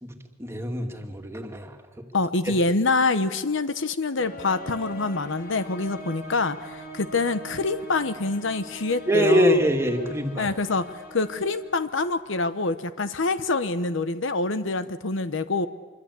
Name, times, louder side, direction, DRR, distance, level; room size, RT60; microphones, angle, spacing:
voice 1, 0.0-2.0 9.1-10.5, equal, 15° right, 4 dB, 2.2 m, -24 dB
voice 2, 2.1-9.6 10.4-15.7, left 3 dB, 70° left, 12 dB, 1.0 m, -26 dB
sound 1, 4.2-12.5, equal, 50° left, 5.2 m, -42 dB
25.5 x 24.5 x 8.4 m, 1.3 s
head